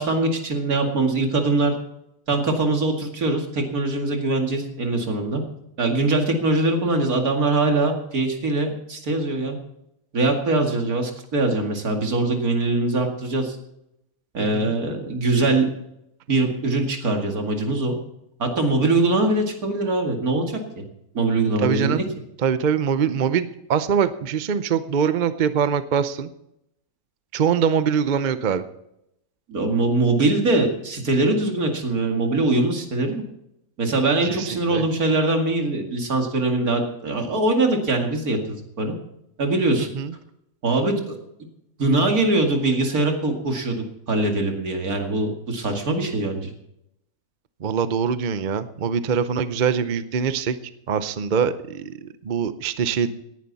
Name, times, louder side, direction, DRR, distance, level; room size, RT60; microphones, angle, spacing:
voice 1, 0.0-1.7 2.3-5.4 5.8-9.6 10.1-13.6 14.3-15.7 16.3-17.9 18.4-20.8 21.1-22.0 29.5-33.2 33.8-38.9 39.4-39.9 40.6-41.2 41.8-46.5, right 2 dB, 75° right, 3 dB, 2.7 m, -22 dB
voice 2, 14.4-14.7 21.6-22.0 22.4-26.3 27.3-28.6 34.2-34.9 39.9-40.1 47.6-50.6 50.9-53.1, right 7 dB, 45° right, 12 dB, 0.7 m, -23 dB
18.0 x 11.0 x 4.1 m, 0.81 s
omnidirectional pair, 1.5 m